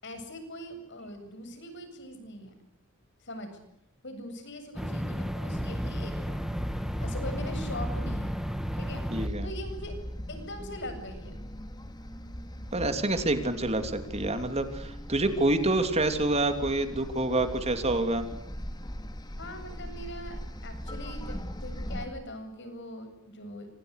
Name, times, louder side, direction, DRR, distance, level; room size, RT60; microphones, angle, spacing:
voice 1, 0.0-2.5 3.2-3.6 4.0-6.4 6.7-8.3 8.7-9.0 9.4-10.0 10.3-11.3 19.4-23.7, left 1 dB, 60° left, 8 dB, 8.0 m, -41 dB
sound 1, 4.8-9.3, equal, ahead, 2.1 m, -34 dB
sound 2, 5.6-22.1, equal, 20° left, 2.9 m, -39 dB
voice 2, 9.1-9.5 12.7-18.2, right 2 dB, 30° right, 7 dB, 3.2 m, -27 dB
28.0 x 26.5 x 6.7 m, 0.76 s
head